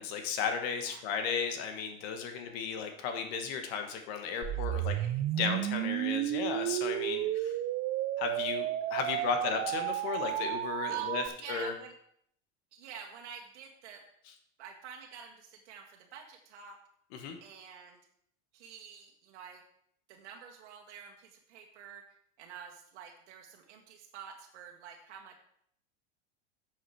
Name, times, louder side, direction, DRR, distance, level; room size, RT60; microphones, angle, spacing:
voice 1, 0.0-4.9 5.4-7.6 8.2-11.7 17.1-17.4, left 6 dB, 60° left, 6 dB, 1.7 m, -35 dB
sound 1, 4.4-11.3, right 13 dB, 30° right, 0.5 m, -32 dB
voice 2, 4.5-5.2 9.0-9.3 10.9-11.1 11.4-11.9 12.7-14.0 14.6-16.8 17.4-18.0 18.5-19.6 20.1-25.4, right 7 dB, 75° right, 1 dB, 1.6 m, -49 dB
8.9 x 7.5 x 4.9 m, 0.68 s
supercardioid pair, 130°, 34 cm